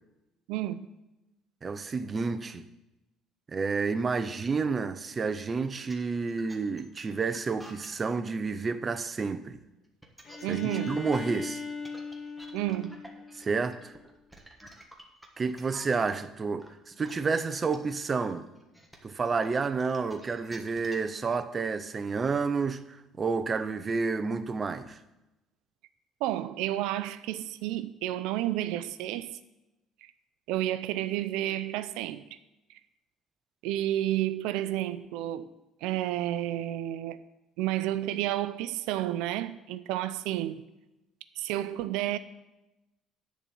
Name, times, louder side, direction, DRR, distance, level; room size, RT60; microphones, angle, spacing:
voice 1, 0.5-0.9 10.4-11.0 12.5-13.0 26.2-29.4 30.0-30.1 30.5-32.3 33.6-35.5 35.8-37.2 37.6-40.7 41.4-42.2, right 14 dB, 90° right, 0.5 m, -31 dB
voice 2, 1.6-2.6 3.5-9.6 10.5-10.6 10.9-11.6 13.4-13.9 15.4-18.5 19.0-25.0, right 4 dB, 25° right, 0.6 m, -30 dB
sound 1, 5.6-8.0 9.8-16.1 16.6-21.2, right 1 dB, ahead, 1.4 m, -50 dB
Bowed string instrument, 10.2-14.0, left 4 dB, 40° left, 2.0 m, -39 dB
10.5 x 4.2 x 7.6 m
cardioid pair, 130°, 0 cm